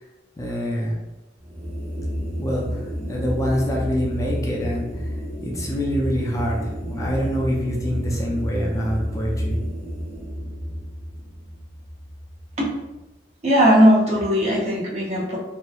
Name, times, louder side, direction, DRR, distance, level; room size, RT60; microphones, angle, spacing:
voice 1, 0.4-1.0 2.4-5.1 5.4-6.6 6.9-9.6, equal, 20° left, -3 dB, 0.4 m, -26 dB
sound 1, 1.4-12.7, equal, 90° right, 1.0 m, -30 dB
voice 2, 13.4-15.4, equal, 40° right, -3 dB, 0.6 m, -18 dB
2.8 x 2.1 x 2.2 m, 1.0 s
head